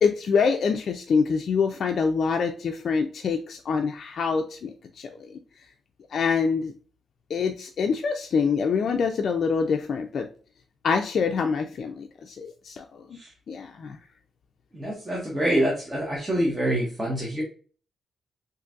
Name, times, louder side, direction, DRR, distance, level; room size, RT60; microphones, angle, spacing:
voice 1, 0.0-5.4 6.1-6.7 7.3-10.3 10.8-13.0 13.5-14.0, left 5 dB, 60° left, 4 dB, 0.3 m, -25 dB
voice 2, 14.7-17.4, right 1 dB, 15° right, -2 dB, 0.8 m, -26 dB
3.8 x 2.6 x 2.4 m, 0.40 s
cardioid pair, 115°, 0 cm